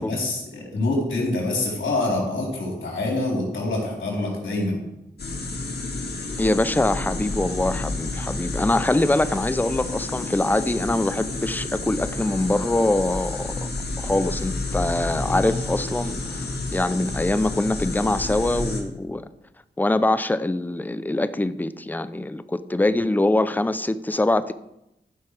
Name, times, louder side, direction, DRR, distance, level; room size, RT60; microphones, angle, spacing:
voice 1, 0.0-4.8, left 2 dB, 80° left, -3 dB, 4.0 m, -26 dB
sound 1, 5.2-18.8, left 2 dB, 60° left, 2.1 m, -30 dB
voice 2, 6.4-13.7 14.0-19.3 19.8-24.5, left 2 dB, 10° left, 13 dB, 0.6 m, -23 dB
14.5 x 5.8 x 4.9 m, 0.87 s
cardioid pair, 65°, 19 cm